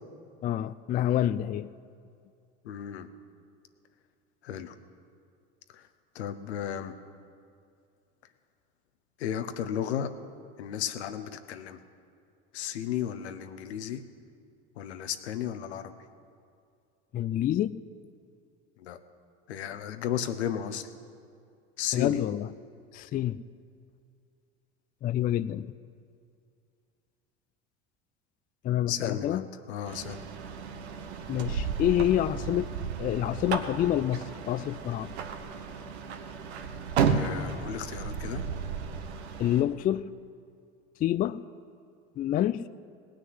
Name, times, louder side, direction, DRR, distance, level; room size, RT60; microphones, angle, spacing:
voice 1, 0.4-1.7 17.1-17.7 21.9-22.5 22.9-23.4 25.0-25.7 28.6-29.5 31.3-32.7 33.0-35.1 39.4-40.1 41.0-41.4 42.2-42.6, left 12 dB, 25° left, 15 dB, 0.4 m, -27 dB
voice 2, 2.6-3.1 4.4-4.7 5.7-5.9 6.1-6.9 9.2-10.1 10.6-11.8 12.5-14.0 14.8-15.9 18.8-19.0 19.5-20.9 21.8-22.2 28.9-30.2 37.1-38.4, left 9 dB, 80° left, 9 dB, 1.0 m, -34 dB
sound 1, 29.9-39.6, right 6 dB, 85° right, 1.2 m, -33 dB
18.0 x 6.4 x 9.6 m, 2.4 s
hypercardioid pair, 85°, 32 cm